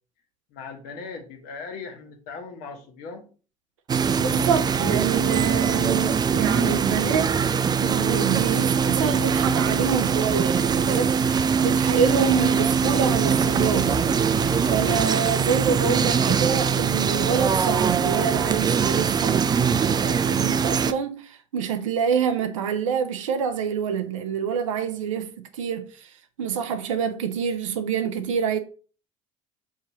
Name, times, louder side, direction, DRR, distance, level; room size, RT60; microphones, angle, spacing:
voice 1, 0.5-3.2, left 4 dB, 70° left, 1.2 m, -38 dB
sound 1, 3.9-20.9, right 6 dB, 25° right, 0.3 m, -22 dB
voice 2, 4.2-7.4 7.8-14.0 14.7-26.1 26.4-28.6, right 7 dB, 90° right, 0.4 m, -27 dB
sound 2, 9.8-15.0, right 1 dB, 65° right, 0.8 m, -37 dB
6.4 x 2.8 x 2.9 m
hypercardioid pair, 60°, 16 cm